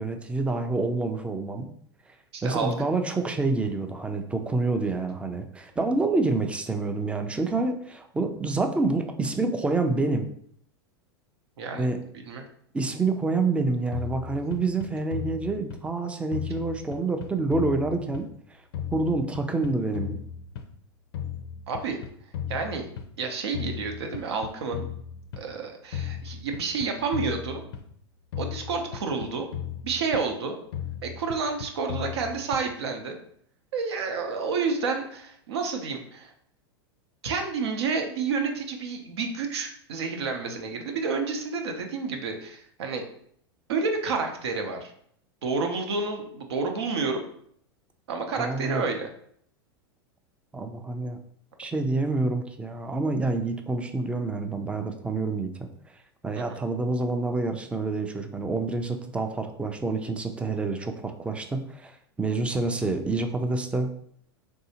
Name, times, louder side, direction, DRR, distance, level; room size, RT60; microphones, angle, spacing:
voice 1, 0.0-1.7 2.4-10.3 11.7-12.0 12.7-18.6 18.9-20.2 48.4-48.8 50.5-51.2 51.6-55.7 56.2-63.9, right 3 dB, 10° right, 6 dB, 0.3 m, -27 dB
voice 2, 2.3-2.7 11.6-11.9 12.2-12.4 21.7-22.0 22.5-22.9 23.2-24.9 25.4-27.6 28.4-29.5 29.8-30.6 31.0-33.2 33.7-36.3 37.2-43.0 43.7-44.9 45.4-47.2 48.1-49.1 56.4-56.6, right 4 dB, 80° right, 4 dB, 0.7 m, -29 dB
sound 1, 13.9-16.0 16.3-18.5 18.7-20.8 21.1-23.2 23.5-25.5 25.9-28.0 28.3-30.4 30.7-32.8, left 9 dB, 70° left, 0.5 m, -36 dB
3.2 x 2.7 x 2.8 m, 0.65 s
hypercardioid pair, 110°, 14 cm